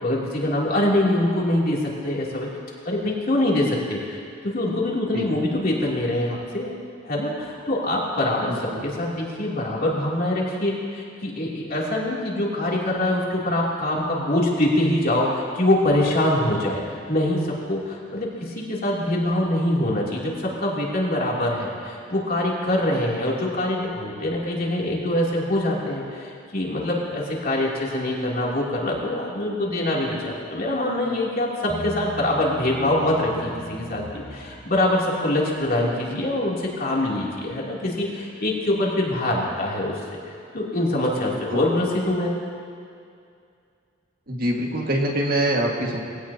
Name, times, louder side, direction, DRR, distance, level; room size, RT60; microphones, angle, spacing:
voice 1, 0.0-2.5 2.8-6.7 7.0-16.8 17.1-40.2 40.5-42.3, left 1 dB, 50° left, -4 dB, 2.9 m, -24 dB
voice 2, 8.5-8.8 41.5-41.6 44.3-46.0, right 1 dB, 50° right, 0 dB, 1.8 m, -24 dB
Bass guitar, 31.7-35.1, equal, 5° right, 1.9 m, -38 dB
21.5 x 17.0 x 2.8 m, 2.4 s
head